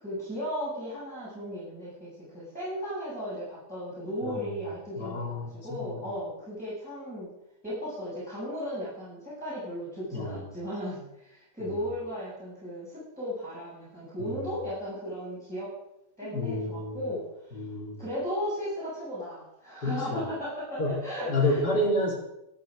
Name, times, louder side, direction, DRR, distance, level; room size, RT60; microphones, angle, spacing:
voice 1, 0.0-7.3 7.6-15.7 16.2-21.6, equal, 5° right, -11 dB, 7.4 m, -36 dB
voice 2, 5.0-6.0 10.1-10.4 11.7-11.8 14.2-14.5 16.3-17.1 17.5-18.0 19.8-20.3 20.8-20.9 21.3-22.2, left 1 dB, 70° left, -1 dB, 3.8 m, -30 dB
14.0 x 12.5 x 5.1 m, 0.83 s
omnidirectional pair, 1.8 m